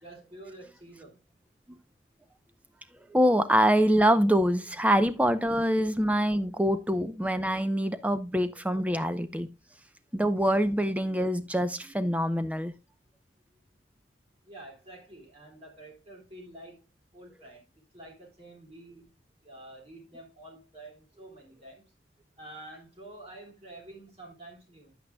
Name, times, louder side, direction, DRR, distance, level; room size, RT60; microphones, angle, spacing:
voice 1, 0.0-1.2 14.4-16.8 17.1-17.7 17.9-19.1 19.4-21.8 22.4-24.9, right 1 dB, 30° right, 3.3 m, -48 dB
voice 2, 3.1-9.5 10.1-12.7, equal, 5° right, 0.6 m, -25 dB
9.8 x 8.5 x 2.2 m
head